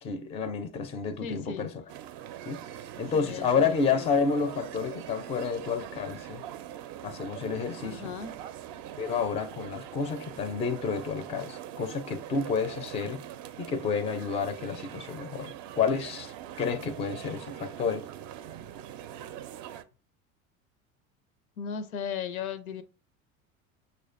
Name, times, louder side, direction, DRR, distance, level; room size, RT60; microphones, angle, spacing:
voice 1, 0.0-1.8 2.5-2.6 3.0-6.4 7.0-8.1 9.0-13.2 13.6-18.1, left 5 dB, 15° left, 0.4 m, -30 dB
voice 2, 1.2-1.7 3.1-4.1 7.8-8.3 21.6-22.8, left 7 dB, 80° left, 0.5 m, -36 dB
sound 1, 1.9-19.8, right 11 dB, 45° right, 0.4 m, -43 dB
6.2 x 2.2 x 2.5 m
hypercardioid pair, 80°, 41 cm